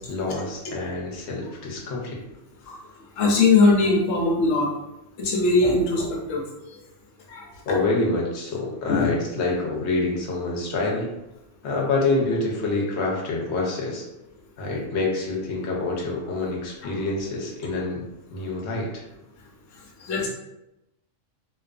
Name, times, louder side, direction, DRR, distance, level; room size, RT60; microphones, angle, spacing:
voice 1, 0.1-2.2 7.7-11.1 11.6-14.0 14.6-18.0 18.3-18.9, left 2 dB, 65° left, -2 dB, 0.9 m, -26 dB
voice 2, 3.2-4.7 5.2-6.4 7.3-7.4 8.9-9.1 16.3-16.4 20.0-20.3, left 3 dB, 85° left, -1 dB, 1.0 m, -20 dB
2.4 x 2.2 x 2.3 m, 0.92 s
omnidirectional pair, 1.3 m